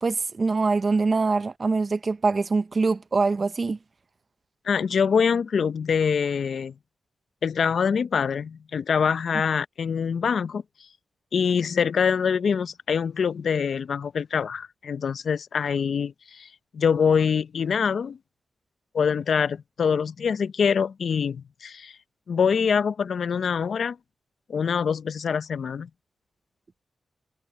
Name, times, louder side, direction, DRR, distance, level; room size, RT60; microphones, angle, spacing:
voice 1, 0.0-3.8, right 4 dB, 45° right, 0.7 m, -24 dB
voice 2, 4.7-6.7 7.4-10.6 11.3-18.2 18.9-21.9 22.3-24.0 24.5-25.9, left 6 dB, 70° left, 0.6 m, -24 dB
wide cardioid pair, 95°, 0 cm